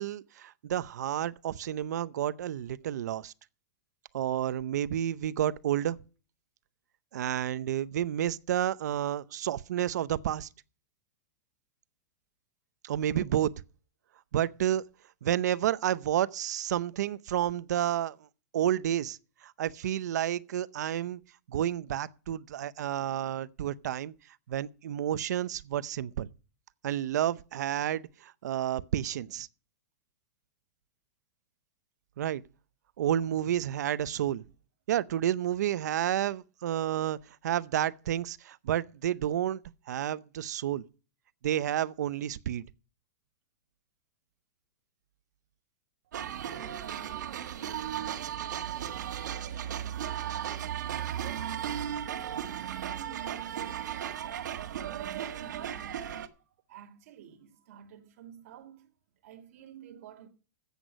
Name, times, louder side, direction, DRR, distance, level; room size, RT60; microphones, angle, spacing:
voice 1, 0.0-3.3 4.1-6.0 7.1-10.5 12.8-13.5 14.3-14.8 15.2-18.1 18.5-21.2 21.5-24.1 24.5-26.3 26.8-29.5 32.2-32.4 33.0-34.4 34.9-37.2 37.4-39.6 39.9-40.8 41.4-42.6, right 11 dB, 70° right, 0.7 m, -30 dB
voice 2, 46.0-50.7 51.2-51.6 52.1-59.0 59.2-60.3, right 9 dB, 50° right, 2.4 m, -51 dB
sound 1, 46.1-56.3, right 10 dB, 90° right, 1.5 m, -36 dB
14.0 x 8.2 x 5.3 m
supercardioid pair, 170°, 9 cm